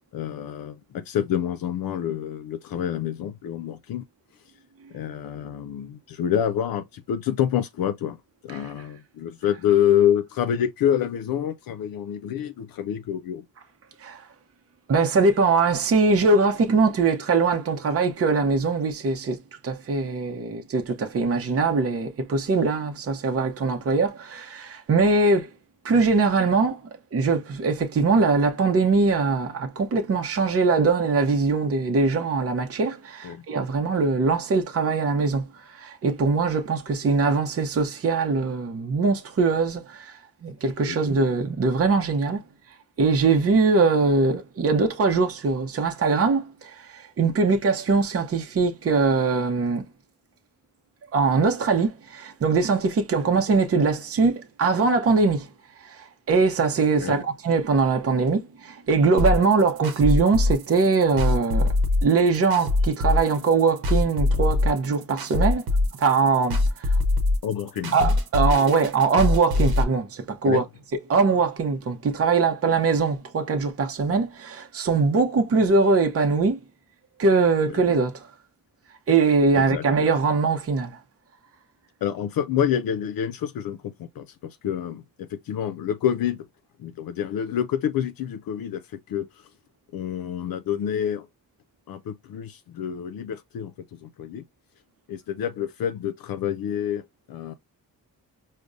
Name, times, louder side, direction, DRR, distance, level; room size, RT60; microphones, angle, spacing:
voice 1, 0.1-4.1 4.9-13.5 33.2-33.4 40.8-41.0 57.0-57.2 67.4-68.0 70.4-70.6 79.5-79.9 82.0-86.5 86.8-89.4 89.9-91.3 91.9-94.4 95.1-97.5, left 9 dB, 75° left, 0.5 m, -27 dB
voice 2, 14.9-19.4 19.6-25.5 25.8-26.8 27.1-42.4 43.0-49.8 51.1-55.5 55.8-61.7 62.0-65.6 66.0-67.0 67.9-70.6 71.1-76.6 77.2-78.3 79.1-81.0, right 4 dB, 40° right, 0.7 m, -22 dB
sound 1, 59.2-69.8, left 2 dB, 80° right, 0.9 m, -23 dB
5.1 x 2.1 x 2.4 m
cardioid pair, 90°, 36 cm